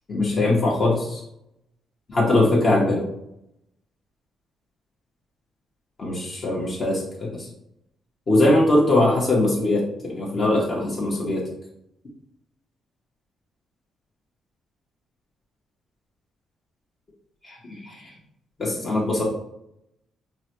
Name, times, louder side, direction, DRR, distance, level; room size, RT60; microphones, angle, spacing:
voice 1, 0.1-1.2 2.1-3.0 6.0-7.5 8.3-11.4 17.4-18.1 18.6-19.2, left 2 dB, 40° left, -4 dB, 0.9 m, -21 dB
3.8 x 2.2 x 2.9 m, 0.79 s
cardioid pair, 90°, 0 cm